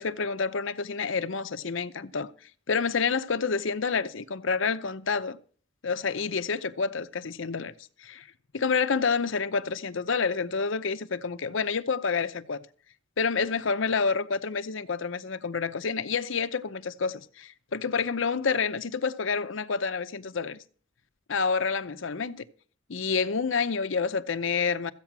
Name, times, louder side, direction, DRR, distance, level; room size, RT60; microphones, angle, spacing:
voice 1, 0.0-2.3 2.7-5.4 5.8-7.7 8.0-8.3 8.5-12.6 13.2-20.6 21.3-22.5 22.9-24.9, left 5 dB, 70° left, 0.7 m, -28 dB
14.5 x 8.3 x 6.0 m
head